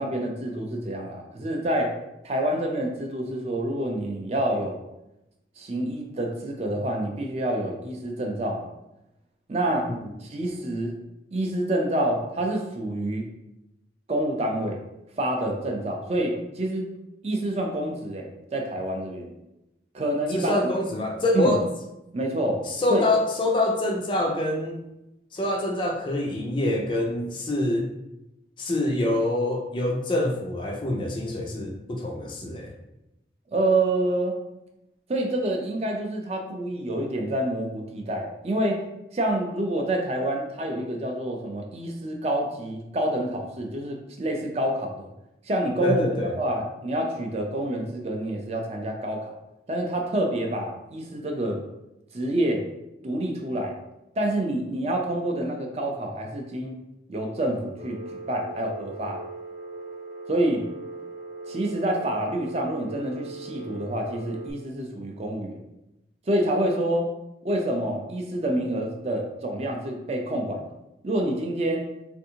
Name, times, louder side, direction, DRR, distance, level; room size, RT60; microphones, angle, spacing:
voice 1, 0.0-1.9 2.2-4.8 5.6-8.7 9.5-9.9 10.2-10.9 11.3-13.3 14.1-14.8 15.2-16.9 17.2-19.3 19.9-20.6 21.3-21.5 22.1-22.6 22.9-23.0 33.5-34.4 35.1-38.8 39.1-45.1 45.5-46.1 46.4-49.3 49.7-51.6 52.1-52.7 53.0-53.7 54.2-56.8 57.1-58.0 58.3-59.2 60.3-60.6 61.5-65.6 66.3-67.1 67.4-70.7 71.0-71.9, right 1 dB, 35° right, 1 dB, 0.4 m, -27 dB
voice 2, 20.3-21.7 22.6-24.8 25.3-27.9 28.6-32.7 45.8-46.4, left 1 dB, 25° left, 2 dB, 0.3 m, -25 dB
Telephone, 57.8-64.5, right 3 dB, 55° right, 0.8 m, -39 dB
3.4 x 2.6 x 2.7 m, 0.91 s
head